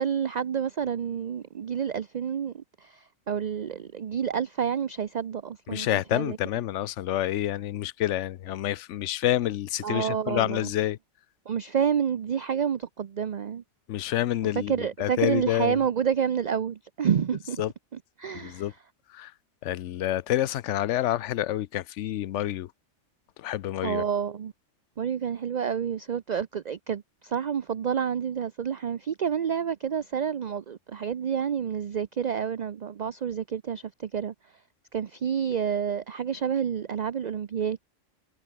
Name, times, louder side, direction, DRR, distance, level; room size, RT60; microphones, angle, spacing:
voice 1, 0.0-6.4 9.8-10.7 11.5-13.6 14.7-17.6 18.2-18.7 23.8-24.5 25.0-34.3 34.9-37.9, right 8 dB, 45° right, 0.6 m, -29 dB
voice 2, 5.7-11.0 13.9-15.8 17.6-17.7 18.3-18.7 19.1-19.3 19.6-22.7 23.4-24.0, left 13 dB, 70° left, 0.9 m, -28 dB
omnidirectional pair, 1.3 m